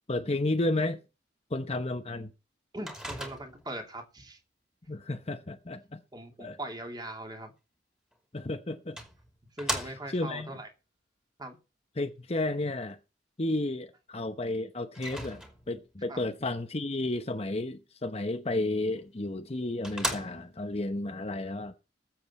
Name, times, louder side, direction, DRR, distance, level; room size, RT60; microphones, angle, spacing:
voice 1, 0.1-1.0 1.5-2.3 4.9-6.0 6.4-6.6 8.3-9.0 10.1-10.5 12.0-13.0 13.4-21.8, left 2 dB, 35° left, 0.9 m, -32 dB
voice 2, 2.7-4.4 6.1-7.5 9.5-10.7 11.4-11.6 16.1-16.3, right 1 dB, 25° right, 2.7 m, -40 dB
Microwave oven, 2.9-3.8 8.1-8.2 9.0-10.3 14.9-15.8 19.0-19.1 19.5-19.6 19.8-20.7, equal, 5° right, 2.8 m, -37 dB
20.0 x 7.8 x 4.3 m
head